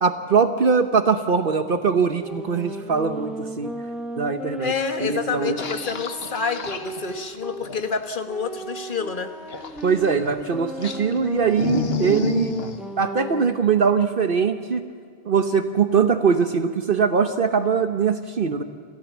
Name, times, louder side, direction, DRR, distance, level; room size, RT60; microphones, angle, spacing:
voice 1, 0.0-3.7 4.2-4.7 5.0-5.6 9.8-12.5 13.0-14.8 15.3-18.6, right 6 dB, 60° right, 8 dB, 1.1 m, -21 dB
sound 1, 2.2-7.6 8.3-13.6, right 1 dB, ahead, 1.4 m, -35 dB
voice 2, 4.6-9.3, left 5 dB, 55° left, 7 dB, 1.5 m, -28 dB
sound 2, 5.6-8.0 9.5-10.4 10.8-12.8, left 4 dB, 70° left, 1.5 m, -30 dB
27.5 x 15.0 x 7.2 m, 2.1 s
omnidirectional pair, 1.1 m